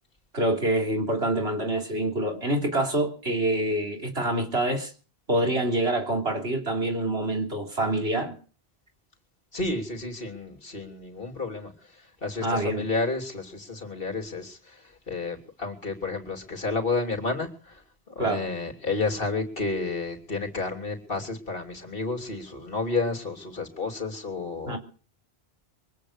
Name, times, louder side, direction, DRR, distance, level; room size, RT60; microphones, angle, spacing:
voice 1, 0.3-4.9 5.3-8.3 12.4-12.8 18.2-18.5 24.7-24.8, right 1 dB, 85° right, 3.7 m, -26 dB
voice 2, 9.5-24.8, left 3 dB, 60° left, 3.4 m, -31 dB
23.5 x 9.1 x 6.7 m
omnidirectional pair, 1.0 m